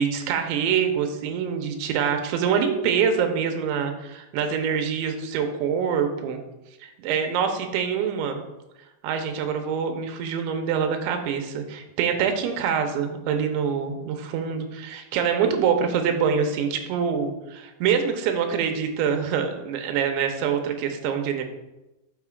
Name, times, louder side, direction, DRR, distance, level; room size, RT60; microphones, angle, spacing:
voice 1, 0.0-6.4 6.8-8.4 9.0-21.4, right 7 dB, 85° right, 5 dB, 3.0 m, -25 dB
11.0 x 6.3 x 2.4 m, 0.99 s
omnidirectional pair, 5.1 m